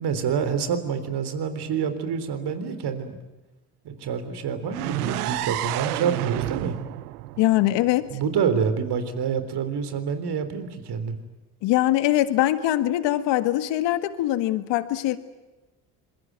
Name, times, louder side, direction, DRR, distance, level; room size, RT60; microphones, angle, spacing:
voice 1, 0.0-3.2 3.8-6.8 8.1-11.2, right 6 dB, 60° right, 10 dB, 3.8 m, -27 dB
sound 1, 4.7-8.6, right 17 dB, 90° right, 0.8 m, -30 dB
voice 2, 7.4-8.1 11.6-15.2, left 14 dB, 70° left, 11 dB, 1.8 m, -22 dB
26.0 x 22.0 x 9.5 m, 1.1 s
hypercardioid pair, 60°, 44 cm